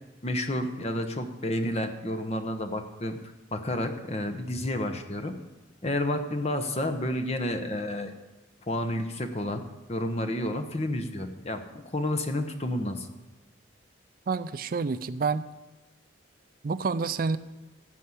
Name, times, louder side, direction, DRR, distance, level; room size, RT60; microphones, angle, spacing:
voice 1, 0.2-3.2 3.5-5.3 5.8-8.1 8.7-9.6 9.9-11.6 11.9-13.1, left 1 dB, 35° left, 6 dB, 1.0 m, -30 dB
voice 2, 14.3-15.4 16.6-17.4, right 4 dB, 45° right, 14 dB, 0.4 m, -28 dB
15.5 x 5.6 x 8.0 m, 1.1 s
head